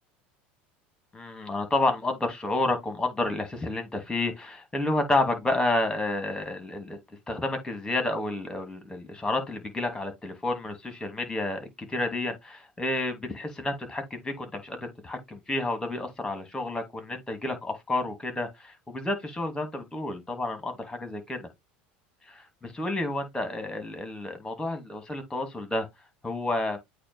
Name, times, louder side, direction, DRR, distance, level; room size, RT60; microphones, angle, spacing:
voice 1, 1.1-7.0 7.3-14.8 15.0-21.5 22.3-25.9 26.2-26.8, left 2 dB, 15° left, 2.9 m, -30 dB
8.4 x 3.0 x 4.8 m
supercardioid pair, 95°, 5 cm